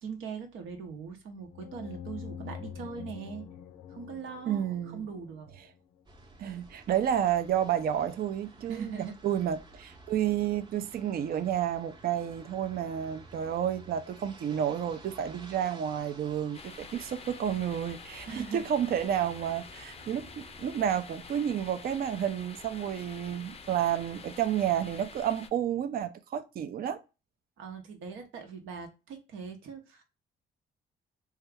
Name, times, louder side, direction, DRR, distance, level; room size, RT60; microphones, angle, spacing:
voice 1, 0.0-3.5 3.9-5.5 8.7-9.1 18.3-18.7 27.6-30.0, right 6 dB, 80° right, 0.9 m, -41 dB
sound 1, 1.5-6.0, left 8 dB, 85° left, 0.4 m, -45 dB
voice 2, 4.5-5.0 6.4-27.0, right 9 dB, 50° right, 0.4 m, -30 dB
sound 2, 6.1-25.5, right 2 dB, 20° right, 0.7 m, -54 dB
sound 3, 16.5-25.5, left 5 dB, 30° left, 0.4 m, -48 dB
2.8 x 2.3 x 3.3 m
cardioid pair, 90°, 20 cm